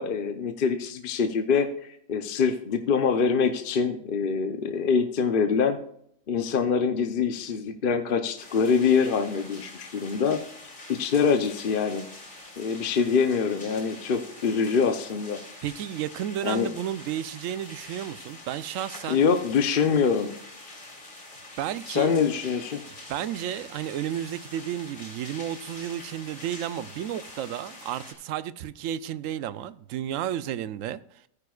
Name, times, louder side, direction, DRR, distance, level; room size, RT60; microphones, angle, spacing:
voice 1, 0.0-5.8 6.3-10.4 10.9-12.1 12.6-15.4 16.4-16.7 19.1-20.3 21.9-22.8, left 6 dB, 50° left, 0.8 m, -24 dB
sound 1, 8.4-28.1, left 2 dB, 80° left, 3.4 m, -45 dB
voice 2, 15.6-19.2 21.6-22.2 23.1-31.0, right 11 dB, 80° right, 0.9 m, -32 dB
15.0 x 9.3 x 2.4 m
omnidirectional pair, 1.4 m